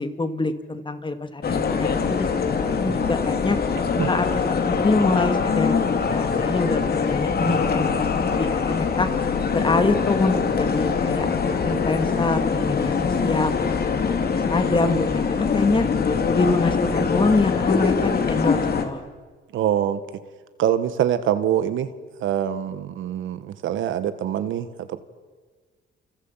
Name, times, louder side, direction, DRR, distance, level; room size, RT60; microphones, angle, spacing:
voice 1, 0.0-3.6 4.1-5.8 6.1-8.1 8.4-9.1 9.5-11.3 11.7-13.7 14.0-15.9 16.3-19.0, left 3 dB, 25° left, 9 dB, 2.4 m, -25 dB
sound 1, 1.4-18.9, left 5 dB, 50° left, 3.2 m, -23 dB
voice 2, 19.5-20.0 20.6-21.9 22.2-25.0, right 10 dB, 80° right, 11 dB, 1.8 m, -24 dB
30.0 x 29.0 x 5.9 m, 1.4 s
cardioid pair, 90°, 20 cm